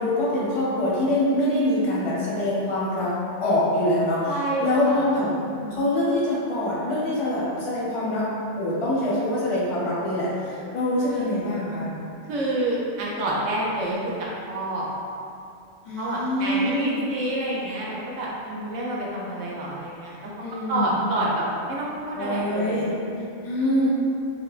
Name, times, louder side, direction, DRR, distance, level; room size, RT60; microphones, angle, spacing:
voice 1, 0.0-3.1 3.4-4.3 4.6-5.4 5.7-8.3 8.6-11.9 15.9-17.0 20.4-21.1 22.1-23.0 23.4-23.9, left 1 dB, 35° left, -8 dB, 0.5 m, -24 dB
voice 2, 4.3-5.0 5.5-5.8 11.0-11.4 12.2-14.1 14.5-14.9 16.0-20.3 20.7-22.9 23.6-23.9, right 1 dB, 90° right, -4 dB, 0.9 m, -28 dB
3.1 x 2.1 x 2.3 m, 2.5 s
omnidirectional pair, 1.2 m